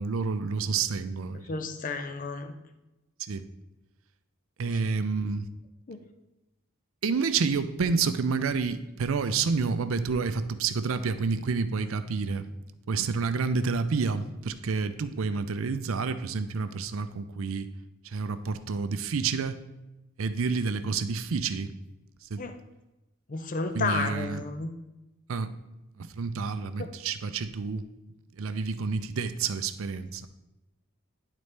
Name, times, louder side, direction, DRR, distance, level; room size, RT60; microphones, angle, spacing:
voice 1, 0.0-1.4 3.2-3.5 4.6-5.5 7.0-12.4 12.9-17.7 18.0-19.6 20.2-21.7 22.3-22.4 23.7-24.4 25.3-25.5 26.0-27.9 28.4-30.3, right 4 dB, 70° right, 11 dB, 0.5 m, -29 dB
voice 2, 1.5-2.5 5.9-6.0 22.4-22.6 23.3-24.7 26.8-26.9, left 4 dB, 40° left, 8 dB, 0.5 m, -32 dB
10.5 x 4.1 x 3.3 m, 0.99 s
head